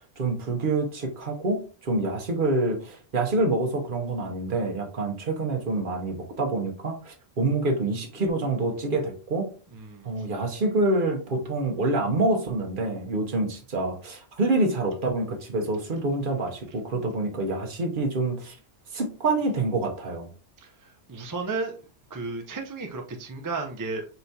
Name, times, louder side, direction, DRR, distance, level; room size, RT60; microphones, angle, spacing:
voice 1, 0.2-9.5 10.0-18.6 18.9-20.3, right 2 dB, 50° right, 2 dB, 0.9 m, -27 dB
voice 2, 9.7-10.3 20.6-21.7 22.1-24.1, right 3 dB, 25° right, 3 dB, 0.4 m, -34 dB
4.4 x 3.4 x 2.7 m, 0.38 s
omnidirectional pair, 1.2 m